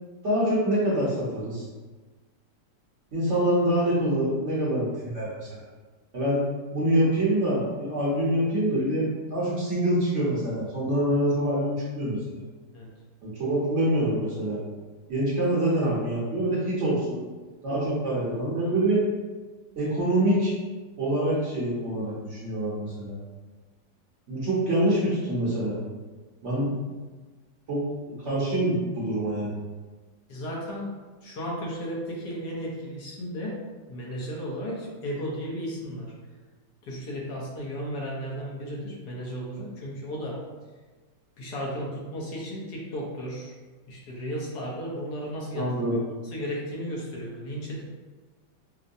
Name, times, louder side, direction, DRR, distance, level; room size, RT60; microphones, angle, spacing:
voice 1, 0.2-1.7 3.1-5.4 6.1-6.4 6.7-9.0 9.3-12.2 13.2-14.6 15.1-17.2 17.6-19.0 19.8-20.5 21.0-23.2 24.3-25.8 26.4-26.7 27.7-29.5 45.5-46.0, right 1 dB, 50° right, -7 dB, 1.0 m, -25 dB
voice 2, 30.3-30.9 31.2-33.6 33.9-36.1 36.8-40.4 41.4-43.5 43.9-46.0 46.2-47.8, equal, 75° left, -3 dB, 1.4 m, -34 dB
5.3 x 2.1 x 2.6 m, 1.3 s
omnidirectional pair, 1.8 m